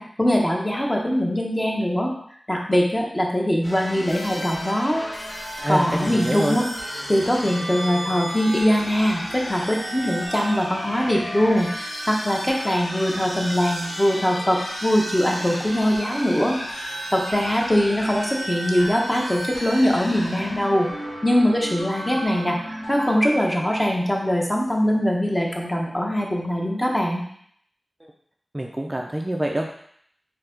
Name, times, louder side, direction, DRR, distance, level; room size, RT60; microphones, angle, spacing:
voice 1, 0.0-2.1 2.5-5.0 5.7-6.7 7.1-20.9 21.2-27.2, equal, 20° left, -1 dB, 0.9 m, -22 dB
sound 1, 3.6-23.1, equal, 80° left, 1.4 m, -33 dB
voice 2, 5.6-6.6 28.5-29.7, right 1 dB, 20° right, 1 dB, 0.4 m, -26 dB
4.5 x 2.8 x 3.8 m, 0.66 s
wide cardioid pair, 70°, 0 cm